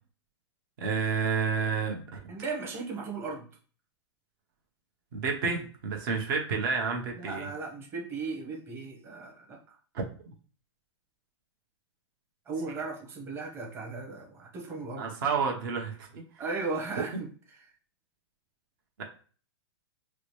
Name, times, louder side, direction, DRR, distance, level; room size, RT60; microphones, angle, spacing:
voice 1, 0.8-2.3 5.1-7.5 9.9-10.1 15.0-16.2, right 5 dB, 50° right, 2 dB, 1.1 m, -30 dB
voice 2, 2.3-3.5 7.2-9.6 12.5-15.1 16.4-17.7, right 4 dB, 15° right, 0 dB, 1.0 m, -36 dB
4.8 x 2.1 x 3.1 m, 0.41 s
hypercardioid pair, 150°, 14 cm